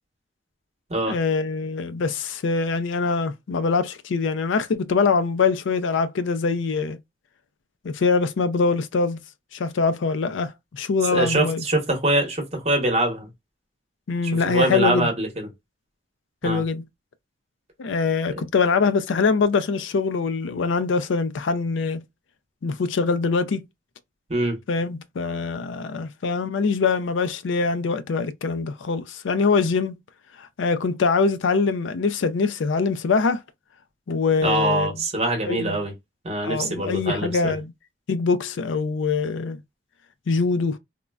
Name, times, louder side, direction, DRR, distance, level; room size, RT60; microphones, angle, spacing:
voice 1, 1.1-7.0 7.8-9.2 9.5-11.6 14.1-15.1 16.4-16.8 17.8-22.0 22.6-23.6 24.7-30.0 30.4-33.4 34.1-35.0 35.5-35.8 36.4-37.7 38.1-39.6 40.3-40.8, left 4 dB, 85° left, 0.4 m, -23 dB
voice 2, 11.1-13.3 14.2-15.5 16.4-16.6 24.3-24.6 34.4-35.9 36.2-37.5, right 2 dB, 35° right, 0.9 m, -24 dB
3.7 x 2.1 x 2.3 m
head